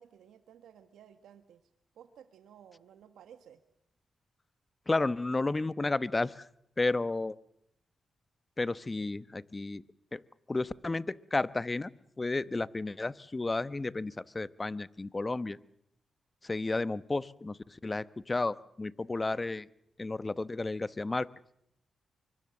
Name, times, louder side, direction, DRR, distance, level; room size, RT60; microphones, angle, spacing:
voice 1, 0.0-1.7 1.9-3.6, right 9 dB, 90° right, 9 dB, 1.3 m, -55 dB
voice 2, 4.9-6.5 6.8-7.4 8.6-9.8 10.1-10.2 10.5-11.9 12.2-15.6 16.4-19.7 20.0-21.3, left 2 dB, 30° left, 17 dB, 1.0 m, -32 dB
24.5 x 23.0 x 7.7 m, 0.72 s
cardioid pair, 55°, 0 cm